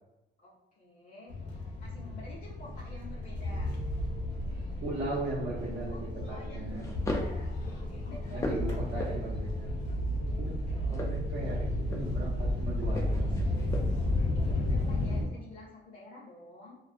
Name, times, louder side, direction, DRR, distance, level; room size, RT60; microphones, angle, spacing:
voice 1, 0.4-1.3 1.8-3.7 5.9-7.5 7.9-9.1 14.3-16.8, left 2 dB, 45° left, -5 dB, 0.7 m, -50 dB
sound 1, 1.3-15.2, left 1 dB, 75° left, 0.8 m, -33 dB
voice 2, 4.8-6.9 8.3-9.8 10.2-10.6 10.9-13.5, right 2 dB, 60° right, -9 dB, 0.7 m, -37 dB
sound 2, 5.6-5.9 6.7-7.4 7.9-9.5 10.8-12.3 12.9-14.1, left 1 dB, 15° left, 0.3 m, -38 dB
2.3 x 2.3 x 2.5 m, 0.99 s
cardioid pair, 165°, 19 cm